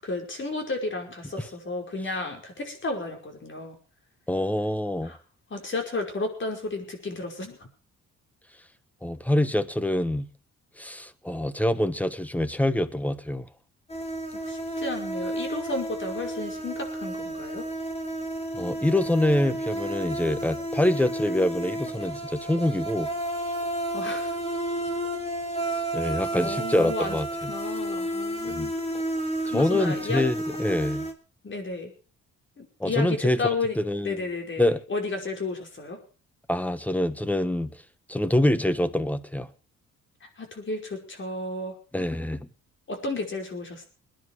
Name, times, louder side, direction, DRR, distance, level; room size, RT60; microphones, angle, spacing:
voice 1, 0.0-3.8 5.0-5.2 5.5-7.6 14.3-17.7 23.9-24.3 26.3-27.2 27.5-28.7 29.4-30.2 31.4-31.9 32.6-33.8 34.0-36.0 40.2-41.7 42.9-43.8, left 3 dB, 40° left, 5.3 m, -33 dB
voice 2, 4.3-5.1 9.0-10.3 10.8-13.5 18.5-23.1 25.9-27.5 28.4-28.7 29.5-31.1 32.8-33.4 33.8-34.3 34.6-34.8 36.5-37.7 38.1-39.5 41.9-42.5, left 1 dB, 5° left, 1.3 m, -25 dB
sound 1, 13.9-31.1, right 1 dB, 20° left, 3.3 m, -31 dB
21.0 x 10.5 x 4.8 m
cardioid pair, 90°, 30 cm